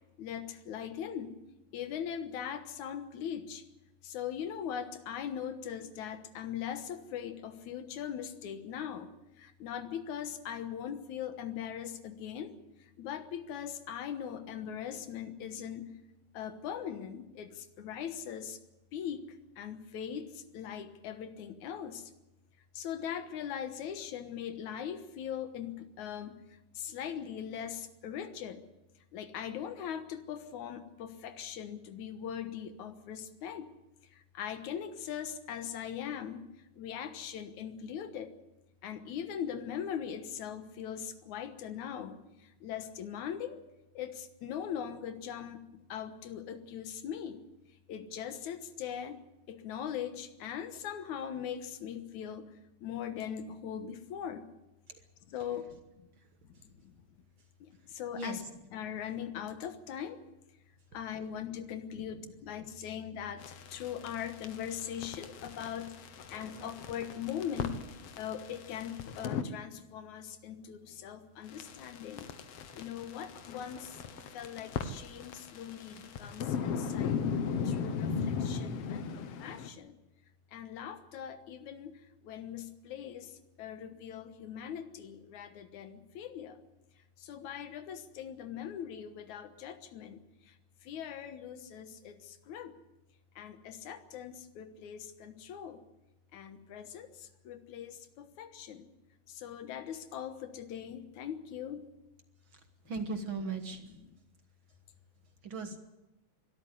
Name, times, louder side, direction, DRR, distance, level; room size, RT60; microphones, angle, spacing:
voice 1, 0.2-1.4 1.7-3.6 4.0-16.0 16.3-18.6 18.9-19.2 19.6-22.1 22.7-26.4 26.7-28.6 29.1-33.7 34.1-36.5 36.8-38.3 38.8-43.6 43.9-47.4 47.9-49.2 49.5-52.5 52.8-54.5 55.3-56.1 56.8-57.0 57.6-58.4 58.7-60.2 60.9-72.3 72.7-77.2 77.6-80.0 80.5-86.6 87.2-90.5 90.8-92.8 93.4-95.8 96.3-98.9 99.3-101.9 105.7-105.8, left 9 dB, 85° left, 10 dB, 2.7 m, -41 dB
sound 1, 63.4-69.4 71.5-79.7, left 6 dB, 60° left, 2.0 m, -38 dB
voice 2, 102.9-103.8 105.4-105.8, right 4 dB, 50° right, 8 dB, 1.8 m, -37 dB
22.5 x 13.0 x 9.7 m, 0.97 s
omnidirectional pair, 3.3 m